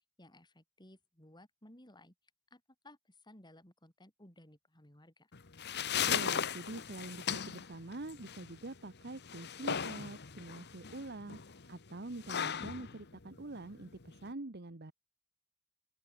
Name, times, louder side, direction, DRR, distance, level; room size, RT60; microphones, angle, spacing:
voice 1, 0.2-2.1 2.5-5.3, left 1 dB, 20° left, 6.9 m, -59 dB
sound 1, 5.3-14.3, left 8 dB, 50° left, 1.2 m, -38 dB
voice 2, 6.1-11.4 11.7-14.9, right 2 dB, 50° right, 1.2 m, -45 dB
open air
head